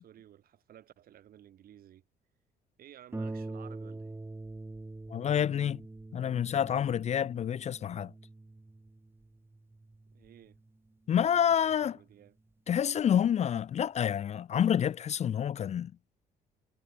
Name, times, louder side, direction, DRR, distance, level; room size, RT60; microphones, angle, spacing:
voice 1, 0.0-2.0 2.8-4.2 10.1-10.6 11.1-12.4, right 11 dB, 60° right, 7.4 m, -55 dB
Harp, 3.1-12.3 13.1-13.2 13.7-13.8, right 2 dB, 15° right, 4.5 m, -45 dB
voice 2, 5.1-5.8 6.1-8.1 11.1-11.9 12.7-15.9, left 9 dB, 40° left, 0.6 m, -28 dB
cardioid pair, 110°, 17 cm